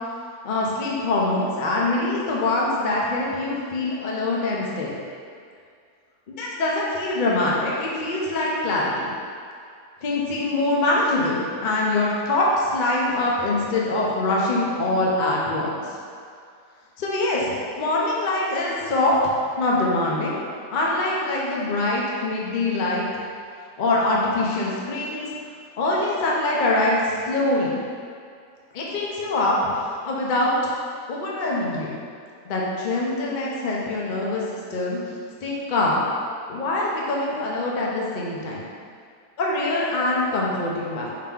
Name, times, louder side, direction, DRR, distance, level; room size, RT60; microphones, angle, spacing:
voice 1, 0.4-5.0 6.3-9.1 10.0-15.7 17.0-17.5 17.8-20.4 20.7-23.1 23.8-25.3 25.8-27.7 28.7-30.6 31.1-31.9 32.5-35.0 35.4-36.0 36.5-38.7 39.4-41.2, left 2 dB, 75° left, -4 dB, 0.4 m, -24 dB
5.0 x 2.9 x 3.6 m, 2.3 s
omnidirectional pair, 1.8 m